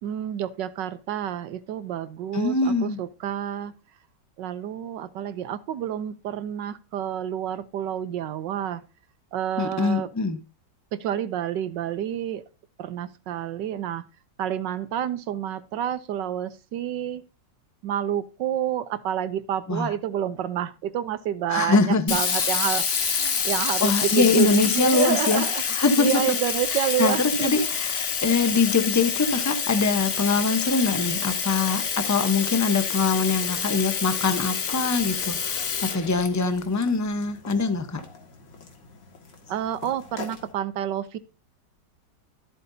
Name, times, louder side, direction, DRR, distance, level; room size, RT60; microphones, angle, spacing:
voice 1, 0.0-3.7 4.4-8.8 9.3-10.1 10.9-12.4 12.8-14.0 14.4-17.2 17.8-25.6 26.0-27.7 39.5-41.2, right 10 dB, 80° right, 1.4 m, -29 dB
voice 2, 2.3-3.0 9.6-10.4 19.7-19.9 21.5-22.2 23.8-26.2 26.7-38.0, left 4 dB, 15° left, 0.5 m, -23 dB
Sink (filling or washing), 22.1-36.8, left 6 dB, 50° left, 1.2 m, -27 dB
sound 1, 34.6-40.5, left 3 dB, 85° left, 2.5 m, -45 dB
13.0 x 7.9 x 2.7 m
omnidirectional pair, 1.9 m